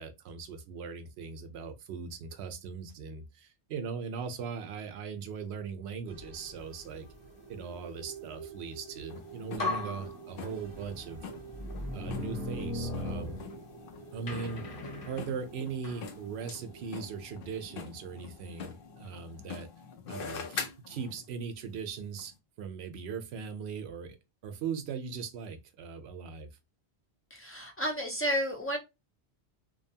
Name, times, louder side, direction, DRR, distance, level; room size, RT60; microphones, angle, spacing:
voice 1, 0.0-7.1 7.5-11.3 11.9-13.4 14.1-14.6 15.0-19.7 20.1-24.2 24.4-26.5, right 5 dB, 75° right, 0.8 m, -39 dB
sound 1, 6.1-19.6, right 6 dB, 30° right, 0.6 m, -50 dB
sound 2, 9.0-9.1 9.6-10.9 11.5-13.9 14.3-16.1, left 1 dB, 40° left, 1.0 m, -37 dB
sound 3, 9.1-21.3 22.2-22.3, left 5 dB, 65° left, 0.7 m, -45 dB
voice 2, 27.3-28.8, equal, 20° left, 0.3 m, -31 dB
2.7 x 2.2 x 2.7 m
omnidirectional pair, 1.1 m